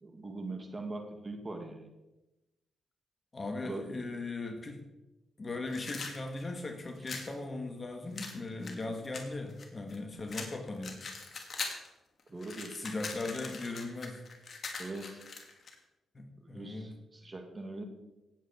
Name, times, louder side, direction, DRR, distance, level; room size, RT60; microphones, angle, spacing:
voice 1, 0.0-1.8 3.6-3.9 12.3-12.7 14.8-15.2 16.4-17.8, right 2 dB, 30° right, 5 dB, 2.2 m, -41 dB
voice 2, 3.3-4.8 5.4-11.0 12.7-14.2 16.1-16.9, left 2 dB, 35° left, 4 dB, 2.1 m, -38 dB
sound 1, 5.7-7.3 8.2-10.0 10.3-11.9 12.2-15.7, left 4 dB, 55° left, 2.3 m, -42 dB
17.5 x 8.0 x 4.6 m, 1.0 s
cardioid pair, 65°, 0 cm